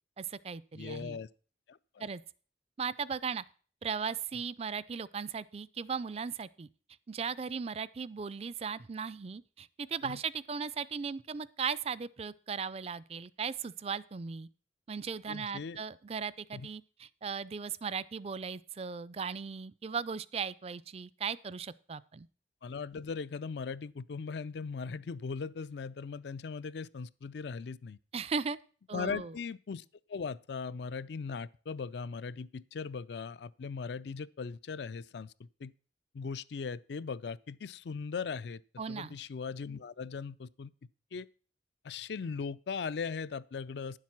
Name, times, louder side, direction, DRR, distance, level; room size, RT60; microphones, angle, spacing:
voice 1, 0.2-1.2 2.0-2.2 2.8-3.4 3.8-6.7 7.1-14.5 14.9-22.3 28.1-28.6 28.9-29.3 38.8-39.2, right 6 dB, 35° right, 0.4 m, -37 dB
voice 2, 0.7-1.3 1.7-2.0 10.0-10.2 15.3-15.8 16.5-16.7 22.6-28.0 28.9-35.7 36.1-38.6 38.9-40.7 41.1-41.3 41.8-44.0, left 5 dB, 70° left, 0.4 m, -39 dB
10.5 x 7.4 x 5.9 m
head